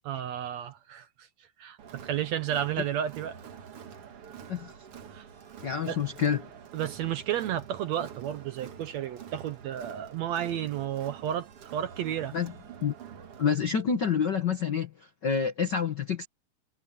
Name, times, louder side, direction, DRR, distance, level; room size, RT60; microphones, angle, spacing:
voice 1, 0.1-1.1 1.6-3.4 5.1-5.2 5.9-6.0 6.7-12.3, right 10 dB, 70° right, 1.8 m, -32 dB
Crowd, 1.8-13.5, right 8 dB, 50° right, 2.2 m, -47 dB
voice 2, 5.6-6.4 12.3-12.5 12.8-12.9 13.4-16.3, left 7 dB, 85° left, 0.9 m, -28 dB
omnidirectional pair, 3.9 m